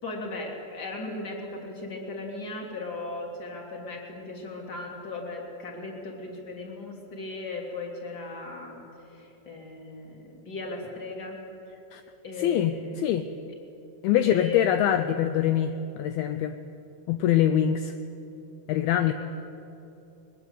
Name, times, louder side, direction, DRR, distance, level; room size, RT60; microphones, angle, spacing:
voice 1, 0.0-8.9 9.1-11.4 12.2-13.6 14.1-14.6 19.1-19.2, left 3 dB, 25° left, 0 dB, 3.3 m, -37 dB
voice 2, 12.4-13.3 14.0-16.6 17.1-17.9 18.7-19.1, left 10 dB, 80° left, 9 dB, 2.3 m, -24 dB
22.0 x 20.0 x 8.2 m, 2.8 s
omnidirectional pair, 5.1 m